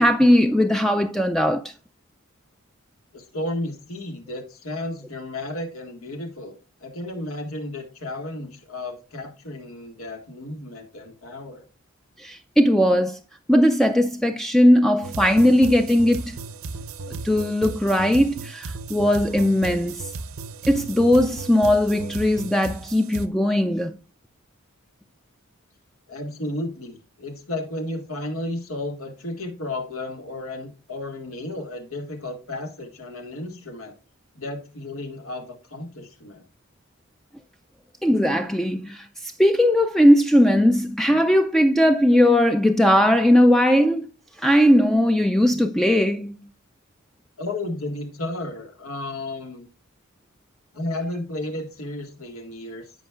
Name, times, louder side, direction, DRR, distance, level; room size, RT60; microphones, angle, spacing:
voice 1, 0.0-1.7 12.2-13.2 13.5-16.4 17.2-20.1 20.7-24.0 38.0-44.1 44.4-46.4, equal, ahead, 0.3 m, -18 dB
voice 2, 3.1-6.5 6.8-11.7 26.1-33.9 34.3-36.4 47.4-49.7 50.7-52.9, left 1 dB, 85° left, 1.9 m, -33 dB
sound 1, 15.0-23.3, right 3 dB, 90° right, 0.8 m, -35 dB
14.0 x 5.2 x 2.4 m
head